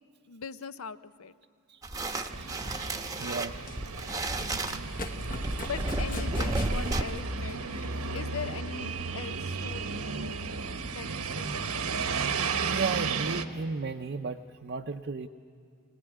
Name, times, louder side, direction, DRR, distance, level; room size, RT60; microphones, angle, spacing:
voice 1, 0.3-1.3 5.7-7.6 8.1-10.0 10.9-11.8, left 6 dB, 75° left, 14 dB, 0.7 m, -40 dB
voice 2, 1.7-3.6 12.6-15.3, right 4 dB, 50° right, 4 dB, 0.6 m, -35 dB
sound 1, 1.8-7.0, right 2 dB, 15° right, 0.9 m, -33 dB
sound 2, 2.3-13.4, right 4 dB, 90° right, 1.1 m, -34 dB
Run, 2.5-8.6, left 2 dB, 40° left, 1.2 m, -44 dB
22.5 x 18.0 x 10.0 m, 2.2 s
head